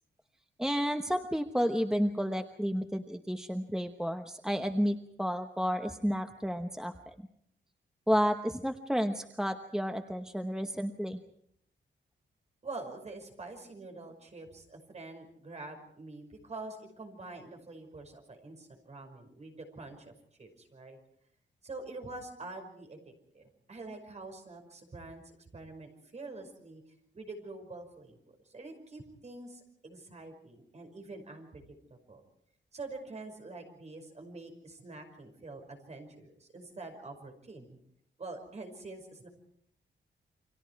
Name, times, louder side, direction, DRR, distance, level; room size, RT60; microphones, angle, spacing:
voice 1, 0.6-7.1 8.1-11.2, equal, 5° right, 6 dB, 1.0 m, -31 dB
voice 2, 12.6-20.1 20.4-21.0 21.6-23.4 23.7-26.8 27.1-31.6 31.9-32.2 32.7-37.8 38.2-39.3, right 3 dB, 35° right, 5 dB, 5.5 m, -46 dB
29.5 x 25.0 x 4.7 m, 0.71 s
wide cardioid pair, 150°, 19 cm